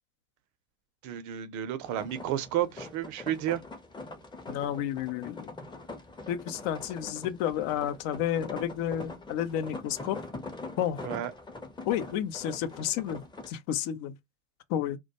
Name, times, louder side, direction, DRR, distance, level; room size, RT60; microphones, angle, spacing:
voice 1, 1.0-3.6 11.0-11.3, right 11 dB, 50° right, 0.6 m, -31 dB
sound 1, 1.8-13.5, left 2 dB, 10° left, 0.6 m, -43 dB
voice 2, 4.5-5.5 6.3-10.2 10.8-11.0 11.8-14.1 14.7-15.0, left 10 dB, 55° left, 0.6 m, -31 dB
2.2 x 2.1 x 2.8 m
hypercardioid pair, 70°, 37 cm